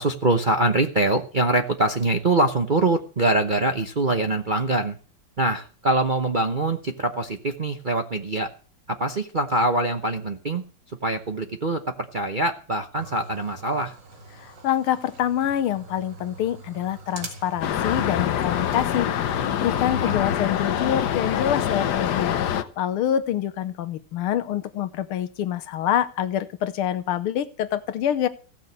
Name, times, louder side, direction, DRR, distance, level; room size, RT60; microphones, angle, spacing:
voice 1, 0.0-5.0 5.4-8.5 8.9-10.6 11.0-13.9 20.0-20.1, right 2 dB, 40° right, 5 dB, 0.7 m, -24 dB
sound 1, 13.0-18.2 18.4-18.5 18.7-18.8 19.2-22.1, right 3 dB, 60° right, 2.6 m, -44 dB
voice 2, 14.4-28.3, left 10 dB, 90° left, 12 dB, 1.8 m, -26 dB
sound 2, 17.6-22.6, left 10 dB, 60° left, 1.3 m, -25 dB
16.5 x 6.5 x 8.0 m, 0.39 s
omnidirectional pair, 2.3 m